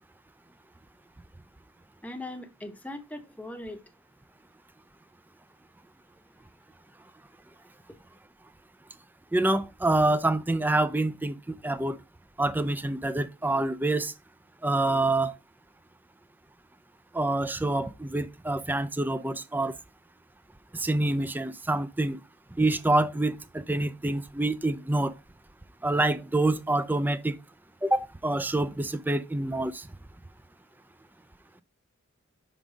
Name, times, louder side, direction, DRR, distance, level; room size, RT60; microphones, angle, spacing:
voice 1, 2.0-3.8, left 1 dB, 5° left, 0.8 m, -39 dB
voice 2, 9.3-12.0 12.4-14.1 14.6-15.3 17.1-19.8 20.7-22.2 22.6-25.1 25.8-27.3 27.8-29.9, right 2 dB, 10° right, 0.4 m, -26 dB
5.9 x 3.9 x 4.9 m
head